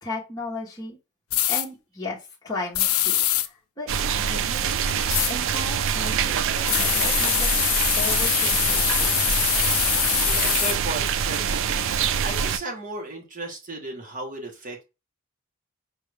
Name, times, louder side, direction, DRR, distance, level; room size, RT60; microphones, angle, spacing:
voice 1, 0.0-1.0 1.5-7.5 8.0-9.3, left 2 dB, 15° left, -5 dB, 1.0 m, -36 dB
sound 1, 1.3-1.6 2.7-3.5 5.1-5.3 6.6-10.8, left 13 dB, 70° left, 0.4 m, -23 dB
sound 2, 3.9-12.6, right 7 dB, 60° right, 0.4 m, -25 dB
voice 2, 10.2-11.7 12.2-14.8, right 2 dB, 35° right, 0 dB, 1.1 m, -35 dB
4.8 x 2.5 x 3.3 m, 0.27 s
head